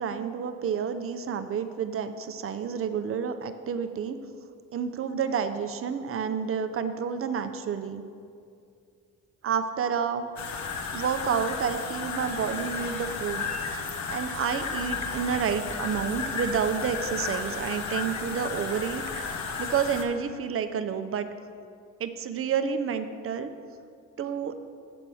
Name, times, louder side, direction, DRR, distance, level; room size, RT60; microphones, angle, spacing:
voice 1, 0.0-4.2 4.7-8.0 9.4-10.3 10.9-21.3 22.0-23.5 24.2-24.6, right 7 dB, 45° right, 9 dB, 0.6 m, -30 dB
sound 1, 10.4-20.0, left 5 dB, 65° left, 0.9 m, -33 dB
8.0 x 4.7 x 7.0 m, 2.4 s
cardioid pair, 90°, 30 cm